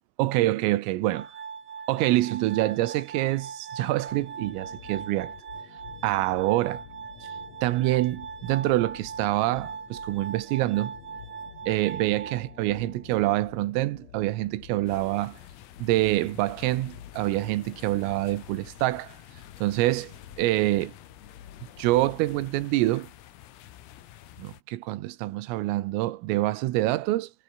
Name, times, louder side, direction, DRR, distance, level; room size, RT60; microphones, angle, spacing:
voice 1, 0.2-1.3 1.9-5.3 6.0-6.8 7.2-7.3 7.6-11.0 11.7-15.4 15.8-19.2 19.6-20.1 20.4-20.9 21.8-23.1 24.4-27.3, right 17 dB, 90° right, 3.8 m, -26 dB
Glass, 1.1-13.1, right 6 dB, 55° right, 6.5 m, -40 dB
sound 1, 4.1-22.5, left 9 dB, 65° left, 1.7 m, -49 dB
sound 2, 14.9-24.6, left 12 dB, 85° left, 4.8 m, -50 dB
omnidirectional pair, 5.9 m